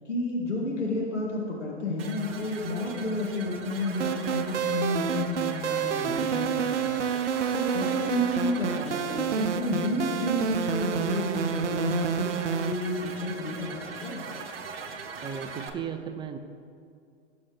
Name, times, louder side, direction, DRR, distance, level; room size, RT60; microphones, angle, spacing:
voice 1, 0.1-7.0 7.5-14.3, left 2 dB, 85° left, -3 dB, 2.0 m, -31 dB
sound 1, 2.0-15.7, right 5 dB, 55° right, 1.3 m, -40 dB
sound 2, 4.0-12.7, right 8 dB, 80° right, 0.6 m, -29 dB
voice 2, 6.0-6.3 15.2-16.4, right 7 dB, 15° right, 9 dB, 0.5 m, -36 dB
18.0 x 7.1 x 3.5 m, 2.3 s
figure-of-eight pair, 100°, 35 cm